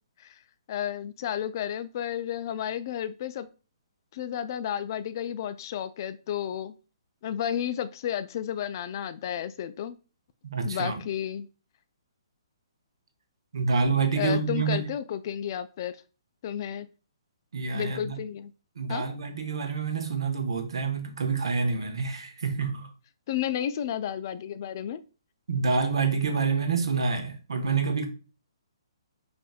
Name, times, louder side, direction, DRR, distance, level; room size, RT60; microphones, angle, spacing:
voice 1, 0.7-3.5 4.1-6.7 7.2-10.0 10.6-11.5 14.2-15.9 16.4-16.9 17.7-18.5 18.9-19.1 23.3-25.0, left 10 dB, 45° left, 0.3 m, -32 dB
voice 2, 10.5-11.0 13.5-14.9 17.5-18.2 18.8-22.9 25.5-28.1, right 4 dB, 70° right, 0.8 m, -27 dB
4.9 x 2.5 x 2.3 m
figure-of-eight pair, 135°, 3 cm